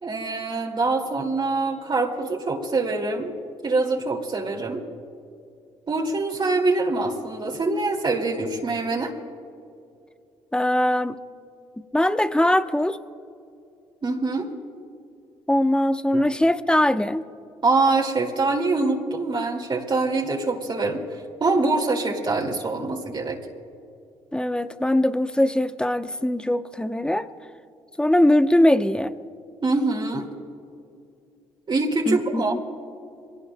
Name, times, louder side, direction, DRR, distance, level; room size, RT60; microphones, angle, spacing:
voice 1, 0.0-3.3 3.6-4.8 5.9-9.1 14.0-14.5 16.1-16.2 17.6-23.4 29.6-30.3 31.7-32.5, right 3 dB, 40° right, -1 dB, 2.3 m, -24 dB
voice 2, 10.5-11.2 11.8-13.0 15.5-17.2 24.3-27.3 28.0-29.1 32.1-32.6, left 1 dB, 5° left, 11 dB, 0.8 m, -21 dB
24.0 x 18.0 x 2.2 m, 2.6 s
hypercardioid pair, 55°, 12 cm